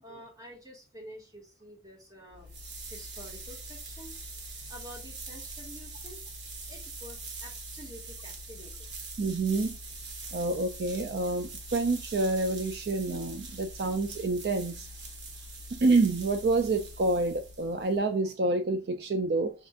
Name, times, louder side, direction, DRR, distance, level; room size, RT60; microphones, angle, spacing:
voice 1, 0.0-2.5 2.9-4.1 4.7-6.2 6.7-8.7, equal, 20° right, 1.4 m, -48 dB
sound 1, 2.3-18.1, right 2 dB, 80° right, 1.1 m, -43 dB
voice 2, 9.2-9.8 10.3-14.9 15.8-19.5, right 3 dB, 65° right, 0.4 m, -28 dB
5.2 x 2.5 x 3.5 m
head